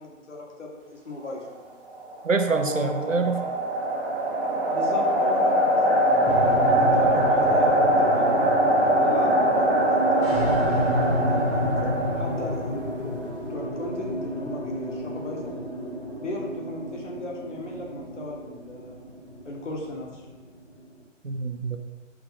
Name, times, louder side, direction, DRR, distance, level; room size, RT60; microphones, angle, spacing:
voice 1, 0.0-1.6 2.6-3.4 4.7-8.5 9.0-15.6 16.2-19.0 19.4-20.2, left 2 dB, 70° left, -1 dB, 2.0 m, -36 dB
sound 1, 1.9-12.8, right 1 dB, 45° right, 1.3 m, -22 dB
voice 2, 2.2-3.4 21.2-21.8, right 4 dB, 85° right, 7 dB, 0.9 m, -25 dB
sound 2, 6.3-20.9, equal, 40° left, 1.7 m, -31 dB
5.9 x 5.1 x 4.2 m, 1.1 s
figure-of-eight pair, 140°, 38 cm